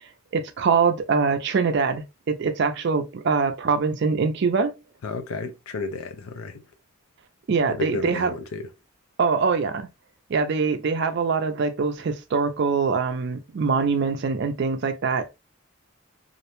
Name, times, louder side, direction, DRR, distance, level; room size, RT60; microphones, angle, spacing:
voice 1, 0.3-4.7 7.5-8.3 9.2-9.9 10.3-15.3, right 5 dB, 55° right, 0.4 m, -23 dB
voice 2, 5.0-6.6 7.6-8.7, left 3 dB, 90° left, 0.5 m, -32 dB
2.4 x 2.1 x 2.9 m
head